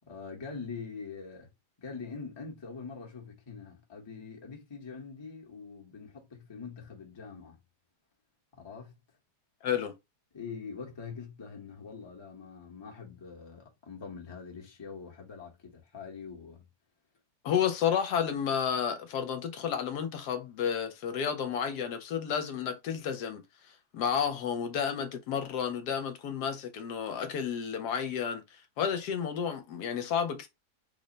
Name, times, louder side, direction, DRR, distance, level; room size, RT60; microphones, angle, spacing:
voice 1, 0.1-1.5 1.8-7.6 8.5-8.9 10.3-16.7, left 5 dB, 25° left, 0.7 m, -44 dB
voice 2, 9.6-9.9 17.4-23.4 23.9-28.4 28.8-30.5, left 8 dB, 75° left, 1.2 m, -31 dB
3.3 x 2.1 x 3.7 m
omnidirectional pair, 1.8 m